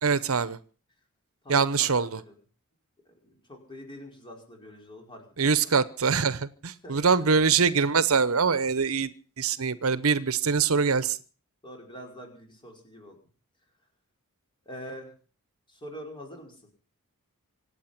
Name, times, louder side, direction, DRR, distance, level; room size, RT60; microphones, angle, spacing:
voice 1, 0.0-0.6 1.5-2.2 5.4-9.1 9.4-11.2, right 5 dB, 70° right, 16 dB, 0.9 m, -24 dB
voice 2, 1.4-2.4 3.2-5.2 5.6-5.7 6.8-7.3 11.6-13.2 14.6-15.1 15.7-16.6, equal, 25° left, 1 dB, 5.1 m, -44 dB
25.5 x 8.7 x 5.9 m, 0.40 s
head